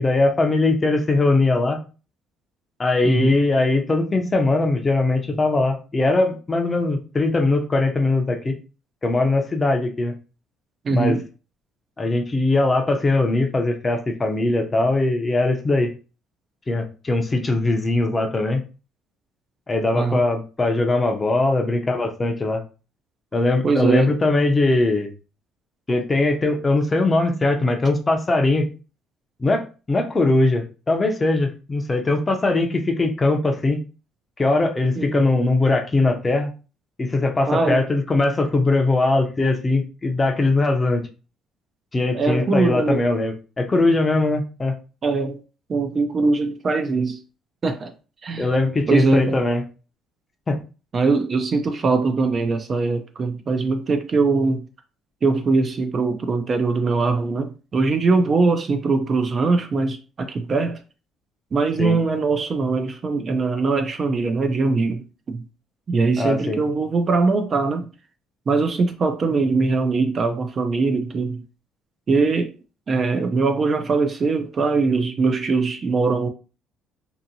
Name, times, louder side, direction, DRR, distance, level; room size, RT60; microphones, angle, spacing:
voice 1, 0.0-1.8 2.8-8.5 9.0-10.1 10.9-11.2 12.0-15.9 16.7-18.6 19.7-22.6 23.3-25.1 25.9-28.7 29.4-33.8 34.4-36.5 37.0-41.0 41.9-44.7 48.4-49.6 50.5-50.6 61.8-62.0 66.2-66.6, left 2 dB, 20° left, 0.5 m, -20 dB
voice 2, 3.0-3.4 10.8-11.2 19.9-20.2 23.6-24.1 35.0-35.3 37.5-37.9 42.1-43.0 45.0-45.4 45.7-47.2 47.6-47.9 48.2-48.5 48.9-49.4 50.9-54.7 55.2-60.8 61.5-65.4 65.9-67.9 68.5-71.4 72.1-72.6 72.9-76.3, right 3 dB, 35° right, 0.4 m, -21 dB
2.7 x 2.7 x 2.6 m
cardioid pair, 125°, 0 cm